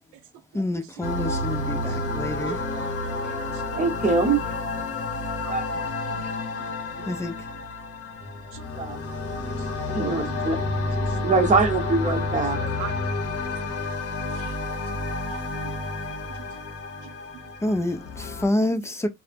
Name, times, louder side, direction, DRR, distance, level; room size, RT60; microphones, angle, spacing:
voice 1, 0.5-2.6 7.1-7.5 10.0-10.3 17.6-19.1, left 1 dB, 10° left, 0.4 m, -28 dB
sound 1, 1.0-18.5, left 2 dB, 50° left, 0.7 m, -30 dB
voice 2, 3.8-4.4 5.5-5.6 8.8-9.0 9.9-10.6 11.2-12.7, right 3 dB, 25° right, 0.8 m, -23 dB
voice 3, 5.4-6.6 7.0-7.1 8.5-8.7 10.5-10.6 12.6-12.9 14.3-14.5 15.3-15.7, right 11 dB, 85° right, 0.5 m, -41 dB
2.1 x 2.0 x 3.3 m
cardioid pair, 90°, 30 cm